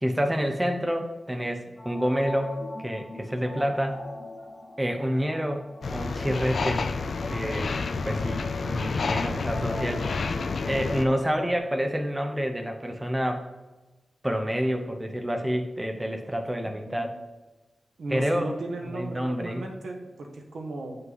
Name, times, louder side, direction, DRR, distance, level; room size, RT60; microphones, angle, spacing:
voice 1, 0.0-4.0 4.8-6.9 7.3-7.8 8.0-10.3 10.6-13.4 14.2-17.1 18.1-18.4 18.9-19.6, equal, 10° right, 5 dB, 0.7 m, -28 dB
sound 1, 1.8-11.6, left 2 dB, 25° left, 1.4 m, -40 dB
sound 2, 5.8-11.0, left 4 dB, 60° left, 0.4 m, -29 dB
voice 2, 16.6-17.2 18.0-21.0, right 2 dB, 75° right, 1 dB, 1.2 m, -36 dB
7.5 x 5.6 x 4.0 m, 1.2 s
wide cardioid pair, 175°, 0 cm